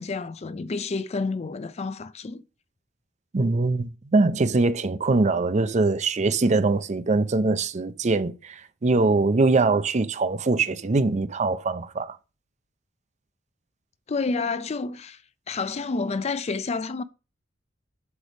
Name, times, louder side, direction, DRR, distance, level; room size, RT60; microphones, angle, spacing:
voice 1, 0.0-2.4 14.1-15.2 15.5-17.0, left 4 dB, 35° left, 0.4 m, -29 dB
voice 2, 3.3-12.2, right 3 dB, 35° right, 0.5 m, -22 dB
8.0 x 3.4 x 6.1 m
head